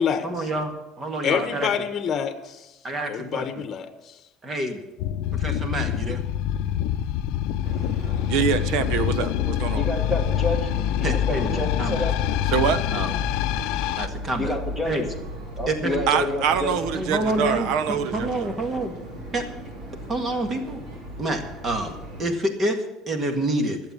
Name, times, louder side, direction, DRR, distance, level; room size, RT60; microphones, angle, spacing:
voice 1, 0.2-1.7 2.8-3.5 4.4-4.8 5.3-6.2 11.0-12.1 12.9-13.1 14.0-14.6 14.8-15.1 15.7-16.0 16.9-18.9 19.3-19.5 20.1-20.8 21.2-23.8, right 1 dB, 25° right, 6 dB, 1.8 m, -28 dB
voice 2, 1.2-2.7 3.1-4.2, left 7 dB, 35° left, 8 dB, 1.2 m, -27 dB
sound 1, 5.0-14.1, left 11 dB, 70° left, 0.6 m, -25 dB
sound 2, 7.6-22.2, equal, 45° right, 3.4 m, -37 dB
voice 3, 8.3-9.8 12.5-12.8 16.1-18.5, right 8 dB, 65° right, 13 dB, 0.9 m, -24 dB
voice 4, 9.8-12.1 14.4-15.1 15.6-16.9, left 1 dB, 5° right, 4 dB, 1.8 m, -29 dB
12.0 x 7.9 x 8.3 m, 1.0 s
cardioid pair, 150°, 0 cm